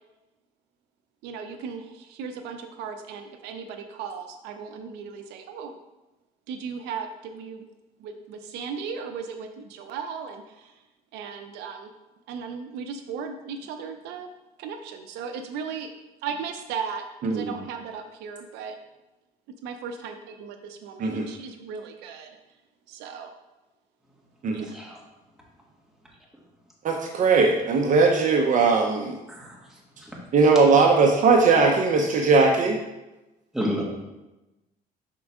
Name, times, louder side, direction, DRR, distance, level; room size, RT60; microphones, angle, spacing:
voice 1, 1.2-5.8 6.5-7.7 8.0-10.7 11.1-11.9 12.3-14.3 14.6-15.9 16.2-18.8 19.6-22.3 22.9-23.3 24.5-24.8, right 6 dB, 90° right, 6 dB, 0.6 m, -36 dB
voice 2, 17.2-17.5 21.0-21.3 24.4-24.7 26.8-29.1 30.3-32.8, right 4 dB, 50° right, 2 dB, 0.7 m, -19 dB
voice 3, 24.7-25.0 29.3-29.6 30.0-30.1 33.5-33.8, equal, ahead, -4 dB, 1.7 m, -29 dB
6.1 x 4.5 x 3.5 m, 1.0 s
cardioid pair, 110°, 17 cm